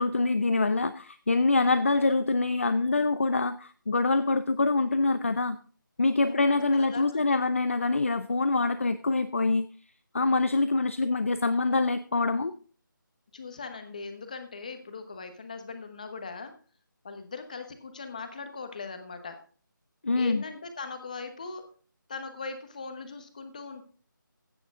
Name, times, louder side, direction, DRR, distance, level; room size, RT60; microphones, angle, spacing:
voice 1, 0.0-5.6 6.0-9.7 10.1-12.5 20.0-20.4, left 3 dB, 40° left, 13 dB, 0.5 m, -25 dB
voice 2, 6.2-7.4 13.3-16.5 17.0-19.4 20.1-21.7 22.1-23.8, left 4 dB, 20° left, 7 dB, 1.1 m, -40 dB
15.5 x 6.9 x 3.7 m, 0.41 s
figure-of-eight pair, 175°, 11 cm